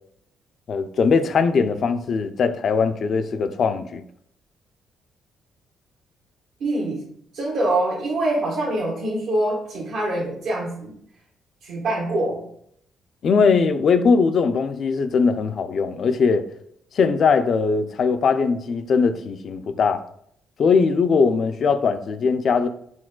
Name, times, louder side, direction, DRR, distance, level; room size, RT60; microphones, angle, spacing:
voice 1, 0.7-4.0 13.2-16.5 16.9-20.0 20.6-22.7, left 5 dB, 55° left, 0.4 m, -20 dB
voice 2, 6.6-7.1 7.3-11.0 11.6-12.5, right 1 dB, 80° right, 1.2 m, -24 dB
6.0 x 2.2 x 2.3 m
cardioid pair, 90°, 0 cm